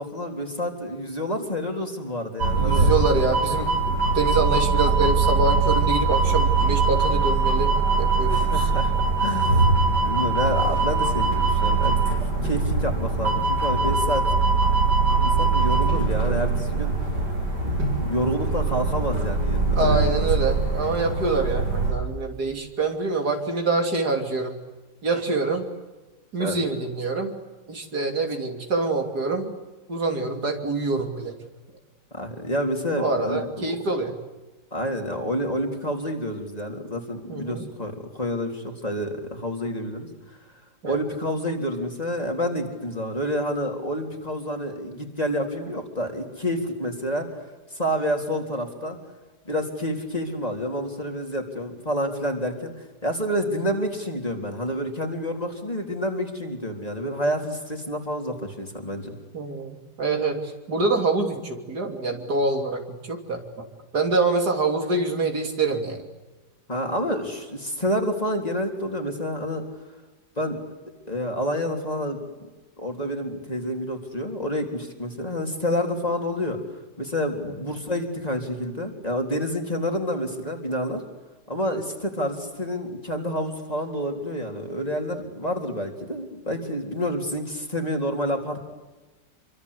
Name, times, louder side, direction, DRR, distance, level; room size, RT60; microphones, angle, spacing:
voice 1, 0.0-2.9 8.3-9.8 10.0-12.0 12.4-14.2 15.1-17.0 17.6-20.6 26.4-26.6 32.1-33.5 34.7-40.1 40.8-47.3 47.7-49.0 49.5-59.1 66.7-69.6 70.4-70.6 71.1-72.2 72.8-76.6 77.0-81.0 81.5-88.7, equal, 20° left, 2 dB, 3.8 m, -28 dB
sound 1, 2.4-21.9, right 3 dB, 90° right, 8.4 m, -22 dB
voice 2, 2.5-7.7 8.0-8.7 19.8-24.6 25.0-25.6 26.3-27.3 27.7-29.5 29.9-31.4 33.0-34.2 37.3-37.7 40.8-41.0 59.3-60.4 60.7-63.7 63.9-66.0 77.4-77.6, right 3 dB, 75° right, 3 dB, 3.7 m, -25 dB
27.5 x 24.5 x 8.4 m, 1.2 s
omnidirectional pair, 1.7 m